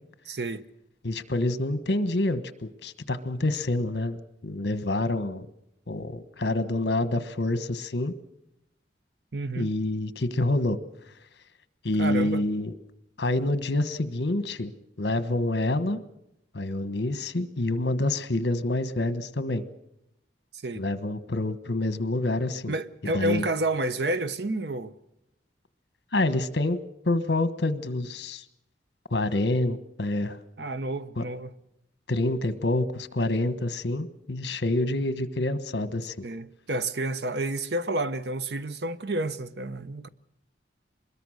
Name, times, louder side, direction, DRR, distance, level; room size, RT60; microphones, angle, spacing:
voice 1, 0.3-0.6 9.3-9.7 12.0-12.4 20.6-20.8 22.7-24.9 30.6-31.5 36.2-40.1, right 2 dB, 65° right, 0.9 m, -30 dB
voice 2, 1.0-5.5 5.9-8.1 9.6-10.8 11.8-12.7 13.2-14.7 15.0-16.0 16.5-19.6 20.8-22.8 23.0-23.4 26.1-26.8 27.0-28.4 29.1-30.4 31.2-31.3 32.1-36.2, left 2 dB, 65° left, 1.3 m, -27 dB
24.5 x 21.5 x 6.5 m
head